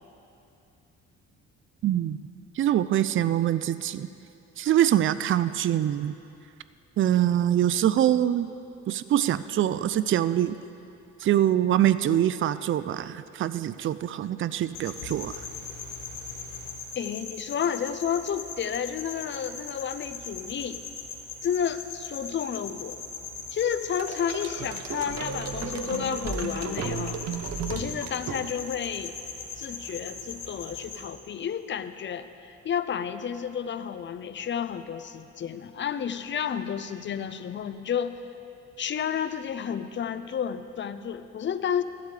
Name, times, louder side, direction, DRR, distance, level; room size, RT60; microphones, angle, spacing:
voice 1, 1.8-2.2 2.6-4.1 4.6-6.1 7.0-8.5 8.9-10.5 11.2-15.4, right 11 dB, 45° right, 14 dB, 0.4 m, -24 dB
sound 1, 14.7-31.1, left 4 dB, 85° left, 1.6 m, -39 dB
voice 2, 17.0-20.8 21.4-23.0 23.5-27.2 27.7-29.1 29.6-38.2 38.8-41.8, left 8 dB, 40° left, 12 dB, 0.5 m, -31 dB
sound 2, 24.0-28.8, right 5 dB, 60° right, 0.9 m, -34 dB
15.0 x 11.5 x 3.3 m, 2.7 s
cardioid pair, 90°, 30 cm